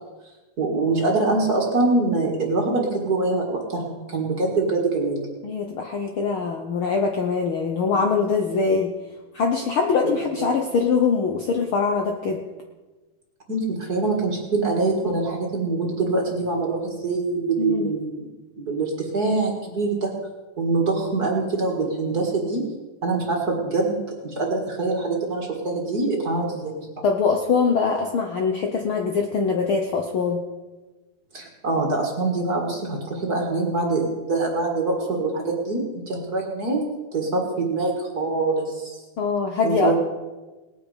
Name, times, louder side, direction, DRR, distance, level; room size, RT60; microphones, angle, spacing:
voice 1, 0.6-5.3 10.0-10.5 13.5-18.3 18.6-20.1 20.6-22.6 23.0-26.9 31.3-36.8 37.1-39.0 39.6-39.9, right 3 dB, 35° right, 0 dB, 2.0 m, -24 dB
voice 2, 5.4-8.9 9.3-12.4 17.6-17.9 27.0-30.4 39.2-39.9, left 5 dB, 65° left, 2 dB, 1.4 m, -23 dB
19.0 x 9.2 x 5.0 m, 1.2 s
omnidirectional pair, 3.4 m